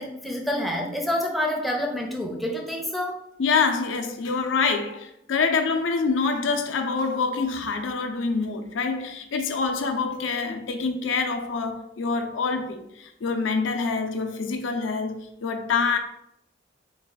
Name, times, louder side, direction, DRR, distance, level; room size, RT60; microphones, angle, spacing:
voice 1, 0.0-3.2, left 1 dB, ahead, 0.4 m, -28 dB
voice 2, 3.4-16.0, left 4 dB, 80° left, 0.5 m, -26 dB
3.5 x 2.2 x 3.9 m
head